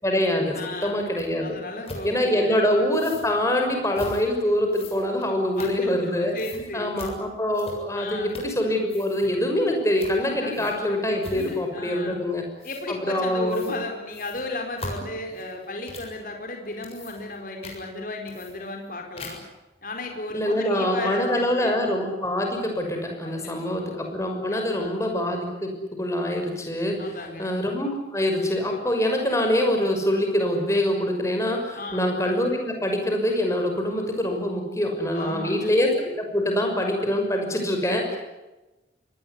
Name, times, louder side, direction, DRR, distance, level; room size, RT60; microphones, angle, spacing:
voice 1, 0.0-1.6 2.0-6.3 6.7-12.4 12.9-13.7 20.3-27.0 27.4-38.2, left 1 dB, 15° left, 3 dB, 6.2 m, -24 dB
voice 2, 0.5-1.1 1.4-2.6 5.6-7.1 7.9-8.4 10.2-10.8 11.3-12.2 12.6-19.4 19.8-21.8 23.2-23.3 23.7-24.0 24.5-24.9 27.0-27.5 31.7-32.0 35.1-35.7, left 2 dB, 50° left, 3 dB, 4.5 m, -35 dB
sound 1, 1.2-1.3 1.9-2.1 2.9-3.3 3.9-4.2 4.7-6.1 6.4-6.6 7.0-7.1 7.5-8.0 8.3-8.6 8.8-9.3 10.0-10.2 10.5-10.9 11.2-11.7 12.6-12.8 13.5-13.8 14.1-16.2 16.7-17.4 17.6-17.8 18.3-18.9 19.2-19.6, left 2 dB, 35° left, 7.3 m, -40 dB
25.5 x 20.0 x 9.9 m, 1.1 s
head